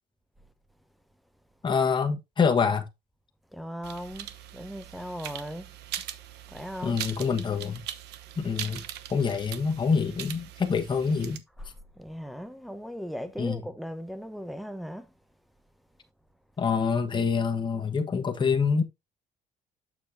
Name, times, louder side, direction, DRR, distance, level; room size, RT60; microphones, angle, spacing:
voice 1, 1.6-2.9 6.8-7.8 8.4-8.8 9.1-11.4 13.4-13.6 16.6-18.8, left 5 dB, 30° left, 1.3 m, -26 dB
voice 2, 3.5-5.7 6.5-7.0 11.6-15.1, equal, ahead, 0.9 m, -38 dB
sound 1, 3.8-11.4, right 12 dB, 80° right, 0.9 m, -41 dB
7.4 x 6.9 x 2.7 m
cardioid pair, 110°, 17 cm